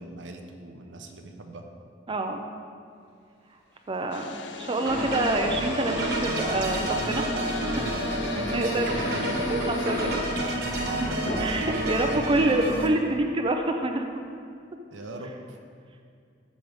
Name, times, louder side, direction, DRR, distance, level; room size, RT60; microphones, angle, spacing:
voice 1, 0.0-1.6 8.4-9.4 9.7-11.0 14.9-15.6, right 1 dB, 80° right, 4 dB, 0.8 m, -40 dB
voice 2, 2.1-2.5 3.9-7.2 7.7-7.9 8.3-8.9 9.5-10.0 10.3-10.4 10.9-14.1, right 2 dB, 30° right, 4 dB, 0.4 m, -27 dB
Thunder, 3.2-11.4, left 1 dB, 85° left, 2.1 m, -46 dB
sound 1, 4.1-10.2, left 4 dB, 70° left, 0.6 m, -35 dB
sound 2, 4.9-12.9, right 1 dB, 65° right, 1.2 m, -29 dB
14.0 x 5.2 x 3.5 m, 2.3 s
head